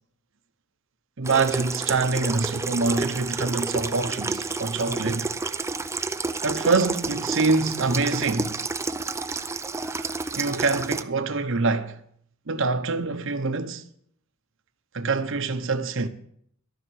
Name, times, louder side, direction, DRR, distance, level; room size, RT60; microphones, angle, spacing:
Water tap faucet / Sink (filling or washing), 1.2-11.0, right 3 dB, 15° right, 0.5 m, -30 dB
voice 1, 1.2-5.3 6.4-8.6 9.8-10.1 10.4-12.0 12.5-13.8 14.9-16.1, right 3 dB, 65° right, 1.0 m, -25 dB
13.0 x 5.9 x 9.2 m
head